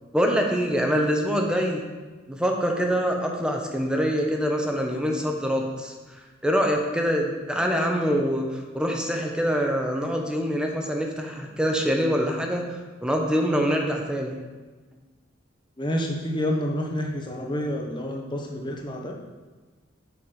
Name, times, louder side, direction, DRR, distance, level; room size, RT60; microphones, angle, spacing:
voice 1, 0.1-1.8 2.3-5.9 6.4-14.3, equal, 5° right, 1 dB, 1.0 m, -25 dB
voice 2, 15.8-19.1, equal, 25° left, 0 dB, 1.2 m, -28 dB
7.1 x 5.8 x 6.5 m, 1.3 s
head